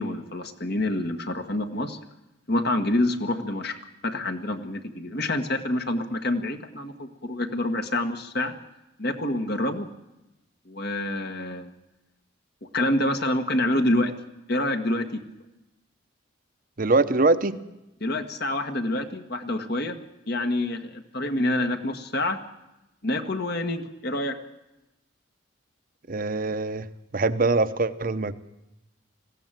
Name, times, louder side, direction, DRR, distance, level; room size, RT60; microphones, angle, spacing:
voice 1, 0.0-2.0 2.5-3.8 4.0-8.5 9.0-9.9 10.7-11.7 12.6-14.1 14.5-15.2 18.0-20.0 20.3-22.4 23.0-24.4, left 1 dB, 55° left, 6 dB, 1.6 m, -27 dB
voice 2, 16.8-17.6 26.1-26.9 27.1-28.3, right 3 dB, 45° right, 12 dB, 0.9 m, -23 dB
20.5 x 15.5 x 9.1 m, 0.95 s
head